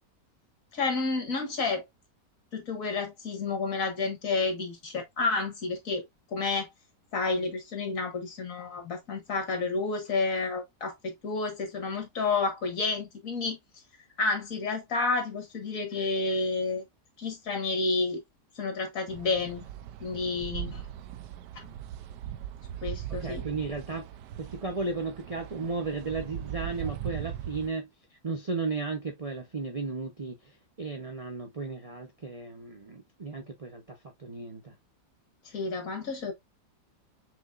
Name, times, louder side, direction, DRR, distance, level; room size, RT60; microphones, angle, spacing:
voice 1, 0.7-1.8 2.5-6.0 6.3-6.7 7.1-13.6 14.2-16.8 17.2-18.2 18.6-19.7 20.0-20.8 21.5-21.7 22.8-23.4 35.5-36.3, left 3 dB, 55° left, 1.9 m, -30 dB
sound 1, 19.1-27.7, right 11 dB, 85° right, 1.2 m, -39 dB
voice 2, 23.1-24.1 24.4-27.9 28.2-34.7, right 3 dB, 35° right, 0.6 m, -35 dB
6.2 x 2.9 x 2.4 m
omnidirectional pair, 1.8 m